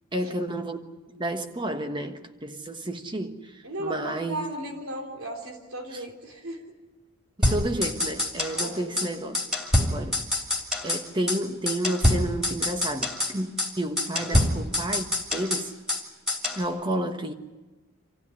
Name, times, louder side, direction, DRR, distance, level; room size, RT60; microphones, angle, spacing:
voice 1, 0.1-4.5 7.4-9.4 9.9-10.2 10.8-15.7 16.5-17.3, right 1 dB, 20° right, 1.3 m, -31 dB
voice 2, 3.6-6.7 8.5-9.0 14.2-14.6, right 1 dB, 80° right, 3.4 m, -36 dB
sound 1, 7.4-8.7 9.0-9.1 9.3-11.0 11.3-11.4 11.7-13.3 13.6-13.7 14.0-16.0 16.3-16.6, left 1 dB, 5° right, 2.8 m, -25 dB
26.5 x 15.5 x 9.8 m
head